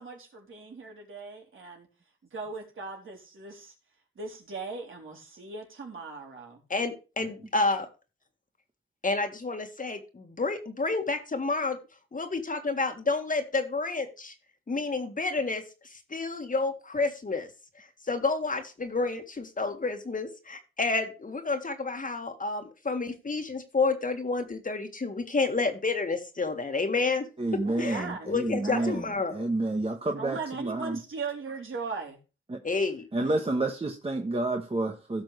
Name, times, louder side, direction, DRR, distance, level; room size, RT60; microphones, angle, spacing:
voice 1, 0.0-1.9 2.3-3.7 4.2-6.6 27.6-28.3 28.6-29.0 30.2-32.2, right 4 dB, 70° right, 3.7 m, -38 dB
voice 2, 6.7-7.9 9.0-11.8 12.1-14.3 14.7-15.6 16.1-17.5 18.1-27.3 27.8-29.5 32.6-33.0, left 3 dB, 40° left, 1.9 m, -29 dB
voice 3, 27.4-31.0 32.5-32.6 33.1-35.2, right 2 dB, 30° right, 1.2 m, -30 dB
16.5 x 6.1 x 3.3 m
wide cardioid pair, 90°, 21 cm